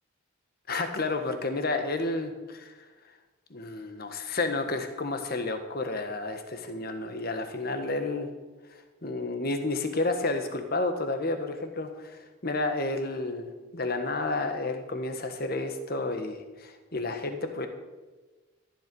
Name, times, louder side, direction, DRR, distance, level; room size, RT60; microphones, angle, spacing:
voice 1, 0.7-2.8 3.5-8.3 8.7-17.7, left 2 dB, 45° left, 7 dB, 1.4 m, -31 dB
14.0 x 10.5 x 5.4 m, 1.3 s
head